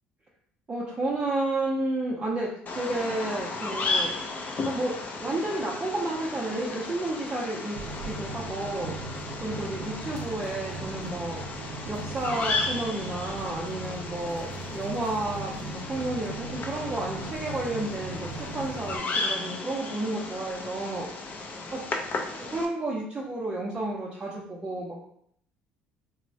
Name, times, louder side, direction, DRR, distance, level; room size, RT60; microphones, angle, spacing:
voice 1, 0.7-4.2 4.6-9.0 9.4-11.4 11.9-21.4 21.7-21.8 22.5-25.0, right 2 dB, 25° right, -4 dB, 0.5 m, -31 dB
Bird vocalization bird call bird song, 2.7-22.7, left 3 dB, 40° left, 0.5 m, -35 dB
sound 1, 7.8-19.0, right 3 dB, 80° right, 0.3 m, -39 dB
2.9 x 2.0 x 2.6 m, 0.68 s
hypercardioid pair, 70°, 4 cm